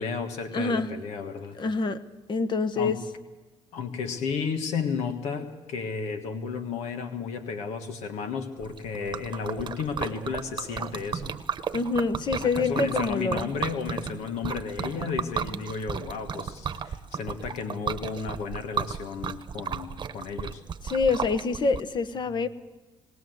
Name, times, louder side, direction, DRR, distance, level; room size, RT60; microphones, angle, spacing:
voice 1, 0.0-1.6 2.7-3.0 3.7-11.4 12.4-20.6, left 5 dB, 85° left, 6 dB, 1.6 m, -33 dB
voice 2, 0.5-0.9 1.6-3.0 11.7-13.5 20.8-22.5, left 4 dB, 45° left, 11 dB, 1.2 m, -26 dB
Liquid, 8.6-21.8, right 7 dB, 45° right, 1.1 m, -34 dB
21.0 x 18.0 x 7.8 m, 1.1 s
cardioid pair, 100°, 11 cm